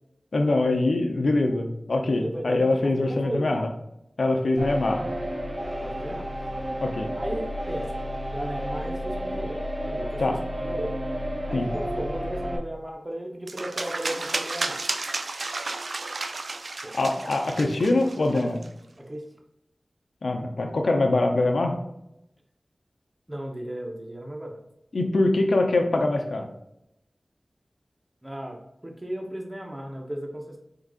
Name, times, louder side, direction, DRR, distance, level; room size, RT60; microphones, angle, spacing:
voice 1, 0.3-3.7 4.2-5.1 6.8-7.1 10.2-10.4 11.5-11.7 17.0-18.6 20.2-21.8 24.9-26.5, left 2 dB, 85° left, 3 dB, 0.5 m, -23 dB
voice 2, 2.2-3.6 5.8-6.3 7.2-7.9 8.3-9.6 9.8-10.4 10.6-10.9 11.5-14.8 16.8-16.9 18.3-18.5 19.0-19.2 23.3-24.6 28.2-30.6, right 1 dB, 25° right, 1 dB, 0.9 m, -35 dB
sound 1, 4.6-12.6, equal, 55° right, 0.8 m, -31 dB
sound 2, 13.5-18.7, right 3 dB, 75° right, 0.3 m, -32 dB
4.5 x 3.8 x 2.4 m, 0.83 s
cardioid pair, 40°, 0 cm